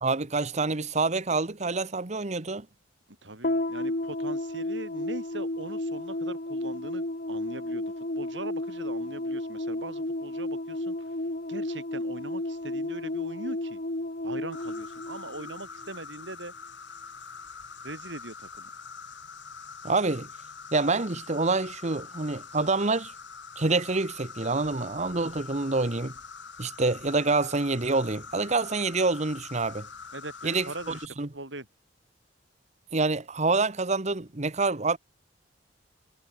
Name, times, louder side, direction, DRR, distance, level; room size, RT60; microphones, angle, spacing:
voice 1, 0.0-2.7 19.8-20.3 20.7-23.1 23.6-26.1 26.6-29.9 30.4-31.3 32.9-35.0, right 3 dB, 40° right, 1.2 m, -27 dB
voice 2, 3.2-10.9 11.5-13.8 14.2-16.5 17.8-18.7 30.1-31.0 31.3-31.7, right 2 dB, 80° right, 6.7 m, -41 dB
sound 1, 3.4-15.9, left 1 dB, 50° left, 1.9 m, -32 dB
Insect, 14.5-31.1, left 5 dB, 80° left, 3.5 m, -44 dB
head